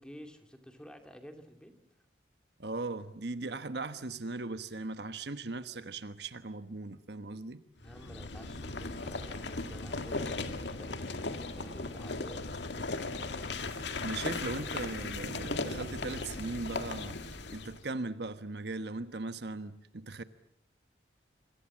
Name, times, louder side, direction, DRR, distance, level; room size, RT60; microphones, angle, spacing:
voice 1, 0.0-1.7 7.8-12.5, equal, 5° left, 2.5 m, -51 dB
voice 2, 2.6-7.6 13.8-17.2 17.5-20.2, right 3 dB, 65° right, 1.2 m, -38 dB
sound 1, 7.8-17.8, left 3 dB, 70° left, 2.0 m, -37 dB
27.0 x 26.0 x 7.4 m
head